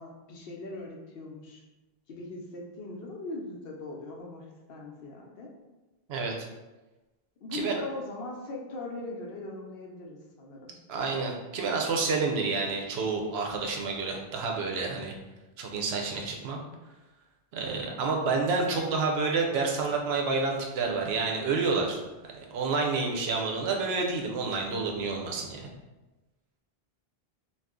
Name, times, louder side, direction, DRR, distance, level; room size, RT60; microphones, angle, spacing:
voice 1, 0.0-1.6 2.1-5.5 7.4-10.7, left 2 dB, 70° left, 0 dB, 0.8 m, -40 dB
voice 2, 6.1-6.5 7.5-7.8 10.9-15.1 15.6-16.6 17.5-25.7, right 4 dB, 85° right, 1 dB, 0.8 m, -29 dB
2.6 x 2.3 x 3.5 m, 1.1 s
omnidirectional pair, 1.0 m